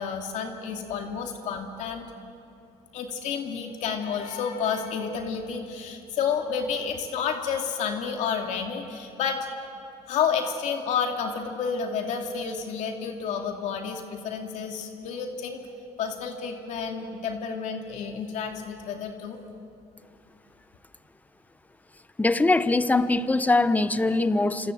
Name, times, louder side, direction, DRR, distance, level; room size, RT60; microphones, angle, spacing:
voice 1, 0.0-2.1 2.9-9.5 10.1-15.6 16.0-19.4, left 6 dB, 70° left, 3 dB, 2.6 m, -30 dB
voice 2, 22.2-24.7, left 2 dB, 10° left, 13 dB, 1.0 m, -22 dB
27.5 x 27.5 x 7.9 m, 2.6 s
cardioid pair, 120°, 13 cm